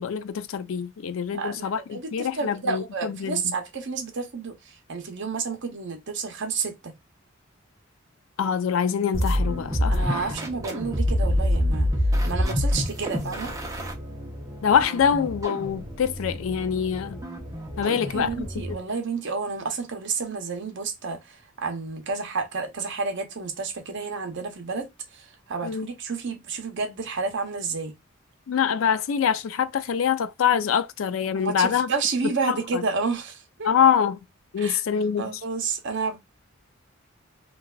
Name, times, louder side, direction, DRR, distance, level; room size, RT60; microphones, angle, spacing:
voice 1, 0.0-3.5 8.4-10.4 14.6-17.2 17.8-18.8 25.6-25.9 28.5-31.9 32.5-32.8 33.6-34.2 34.5-35.3, left 7 dB, 70° left, 0.4 m, -25 dB
voice 2, 1.3-6.9 9.9-11.9 12.2-13.5 17.8-24.9 25.1-27.9 31.4-33.7 34.6-34.8 35.2-36.2, right 4 dB, 60° right, 0.8 m, -30 dB
sound 1, 9.1-18.8, equal, 15° right, 0.7 m, -27 dB
3.2 x 2.3 x 2.3 m
head